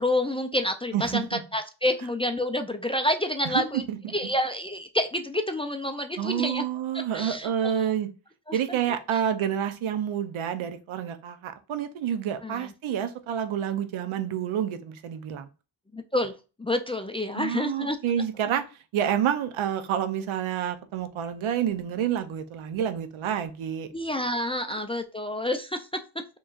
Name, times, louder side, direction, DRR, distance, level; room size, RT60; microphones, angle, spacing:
voice 1, 0.0-3.8 4.1-6.6 7.1-7.9 8.5-8.8 9.1-9.2 12.4-12.7 15.9-18.0 23.9-26.0, left 1 dB, 15° left, 0.3 m, -28 dB
voice 2, 0.9-1.4 3.5-3.6 3.9-4.1 6.2-8.1 8.5-15.5 17.3-18.6 18.9-23.9, right 9 dB, 85° right, 0.7 m, -28 dB
4.4 x 3.0 x 2.4 m
cardioid pair, 75°, 47 cm